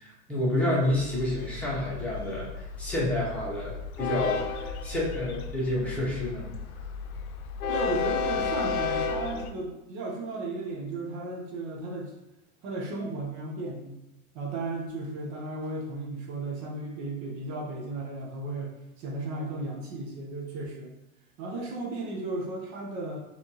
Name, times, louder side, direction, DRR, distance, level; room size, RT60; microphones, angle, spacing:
voice 1, 0.0-6.5, left 1 dB, 5° left, -8 dB, 1.6 m, -29 dB
Train, 0.9-9.5, left 5 dB, 80° left, 0.6 m, -33 dB
voice 2, 7.7-12.1 12.6-14.0 14.3-21.0 21.4-23.2, right 2 dB, 55° right, -1 dB, 1.1 m, -35 dB
4.3 x 3.5 x 3.0 m, 0.93 s
hypercardioid pair, 115°, 42 cm